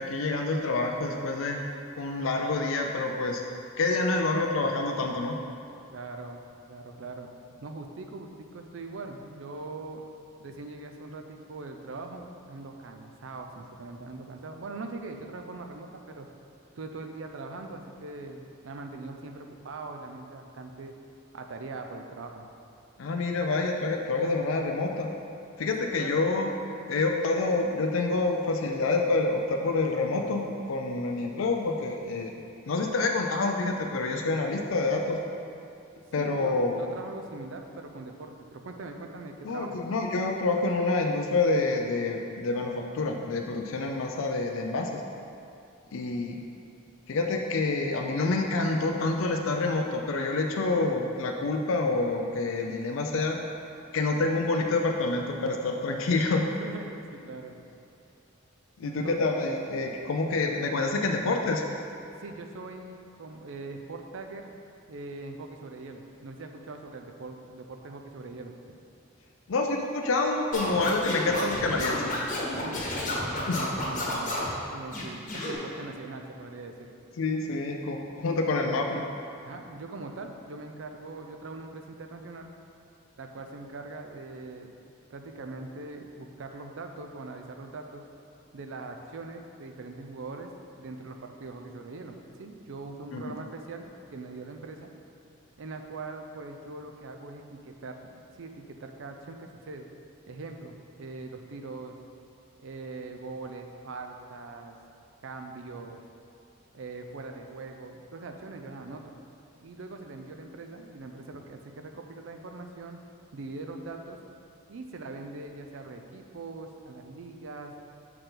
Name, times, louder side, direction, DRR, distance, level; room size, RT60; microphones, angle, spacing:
voice 1, 0.0-1.7 2.0-3.4 3.8-5.4 23.0-25.1 25.6-26.5 26.9-32.3 32.7-35.2 36.1-36.8 39.4-45.0 45.9-46.4 47.1-53.4 53.9-56.4 58.8-61.6 69.5-72.1 73.5-73.6 77.2-79.0 93.1-93.2, left 3 dB, 75° left, 3 dB, 0.5 m, -27 dB
voice 2, 5.9-6.4 6.7-7.3 7.6-10.0 10.4-16.3 16.7-20.9 21.3-22.5 25.8-26.3 36.2-39.8 56.6-57.6 58.8-59.2 62.2-64.5 64.9-68.5 72.5-74.4 74.7-76.9 79.4-82.5 83.2-84.7 85.1-88.1 88.5-90.5 90.8-94.9 95.6-98.0 98.4-99.9 100.3-101.9 102.6-104.8 105.2-106.0 106.7-109.2 109.6-113.0 113.3-114.2 114.7-117.8, right 3 dB, 70° right, 4 dB, 0.5 m, -41 dB
Scratching (performance technique), 70.5-74.5 74.9-75.6, left 1 dB, 40° left, 1.1 m, -31 dB
6.5 x 4.6 x 3.8 m, 2.6 s
head